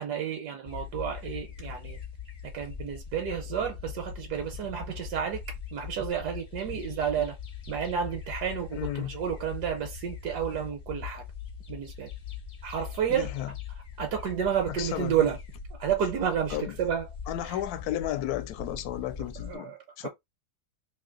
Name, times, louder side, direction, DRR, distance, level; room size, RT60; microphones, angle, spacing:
voice 1, 0.0-2.0 2.5-5.4 5.7-7.4 7.7-11.2 11.7-12.1 12.6-13.3 14.0-15.4 15.8-17.1 19.5-19.8 20.0-20.1, right 8 dB, 85° right, 1.3 m, -30 dB
sound 1, 0.6-19.6, left 7 dB, 40° left, 0.7 m, -41 dB
voice 2, 8.7-9.2 13.1-13.5 14.7-15.2 16.5-16.8 17.3-20.1, left 12 dB, 75° left, 1.1 m, -33 dB
3.0 x 2.7 x 3.8 m
omnidirectional pair, 1.7 m